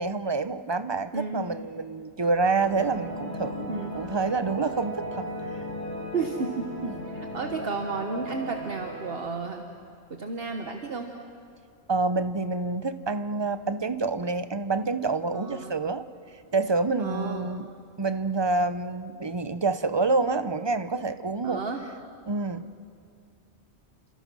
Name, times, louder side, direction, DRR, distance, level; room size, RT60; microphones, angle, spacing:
voice 1, 0.0-5.3 6.8-6.9 11.9-16.0 16.5-17.7 18.0-21.6 22.3-22.7, right 3 dB, 25° right, 12 dB, 0.7 m, -27 dB
voice 2, 1.1-1.5 3.6-4.0 6.1-6.7 7.1-9.7 10.1-11.1 15.3-15.9 17.0-17.5 21.4-21.8, right 4 dB, 60° right, 4 dB, 1.5 m, -32 dB
sound 1, 2.6-9.2, equal, 35° left, 6.3 m, -36 dB
29.5 x 26.5 x 6.2 m, 2.3 s
omnidirectional pair, 1.2 m